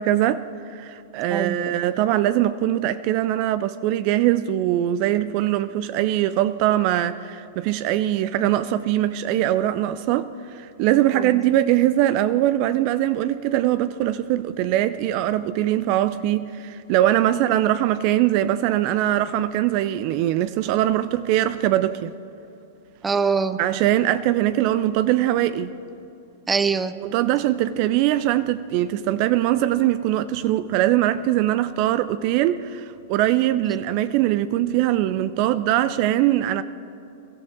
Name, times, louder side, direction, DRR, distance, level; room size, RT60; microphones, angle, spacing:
voice 1, 0.0-22.1 23.6-25.7 27.0-36.6, right 13 dB, 50° right, 14 dB, 0.4 m, -22 dB
voice 2, 1.3-1.7 11.1-11.4 17.4-17.5 23.0-23.6 26.5-26.9 33.7-33.8, right 5 dB, 15° right, 13 dB, 0.7 m, -24 dB
22.5 x 14.0 x 3.7 m, 2.7 s
hypercardioid pair, 105°, 0 cm